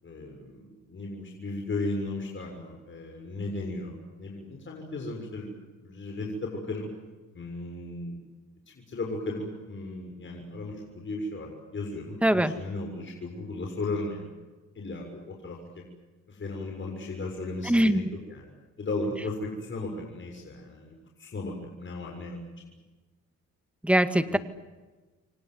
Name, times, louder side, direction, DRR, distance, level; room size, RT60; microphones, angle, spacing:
voice 1, 0.0-5.5 5.8-6.9 7.3-8.2 8.9-14.2 14.7-15.8 16.3-18.0 18.3-18.5 18.8-22.4 24.3-24.4, left 2 dB, 40° left, 1 dB, 6.7 m, -35 dB
voice 2, 12.2-12.5 17.6-18.0 23.8-24.4, right 1 dB, 5° right, 10 dB, 2.0 m, -22 dB
29.5 x 25.0 x 8.0 m, 1.3 s
cardioid pair, 90°, 30 cm